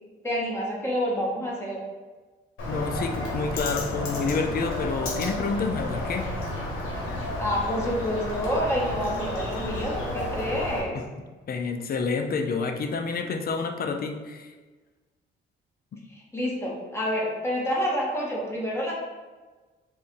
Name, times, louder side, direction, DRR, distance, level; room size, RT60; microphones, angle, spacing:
voice 1, 0.2-1.8 7.4-11.0 16.1-18.9, equal, 15° left, -4 dB, 1.3 m, -28 dB
Bird, 2.6-10.8, left 1 dB, 80° left, 1.3 m, -31 dB
voice 2, 2.7-6.3 10.9-11.0 11.5-14.5, left 4 dB, 50° left, 5 dB, 0.5 m, -28 dB
4.3 x 2.6 x 3.6 m, 1.3 s
cardioid pair, 90°, 20 cm